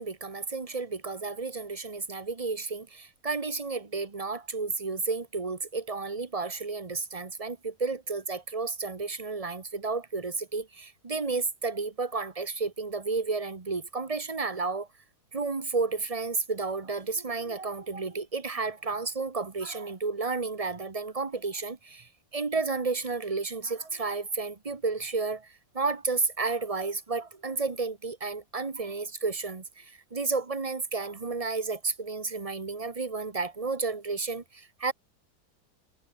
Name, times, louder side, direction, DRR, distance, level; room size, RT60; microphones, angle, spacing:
voice 1, 0.0-14.9 15.3-34.9, right 4 dB, 25° right, 1.0 m, -32 dB
omnidirectional pair, 2.1 m